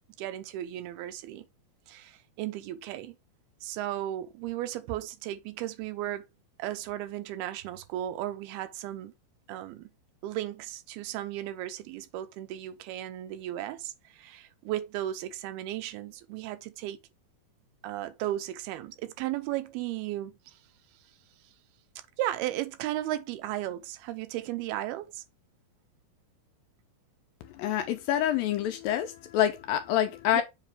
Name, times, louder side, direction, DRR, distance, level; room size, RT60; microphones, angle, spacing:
voice 1, 0.2-1.5 1.9-3.2 3.6-6.3 6.6-9.1 9.5-9.9 10.2-17.0 17.8-20.6 22.2-25.2 30.3-30.4, right 13 dB, 80° right, 2.6 m, -35 dB
voice 2, 27.6-30.4, left 11 dB, 80° left, 2.1 m, -27 dB
7.3 x 3.1 x 4.8 m
omnidirectional pair, 4.5 m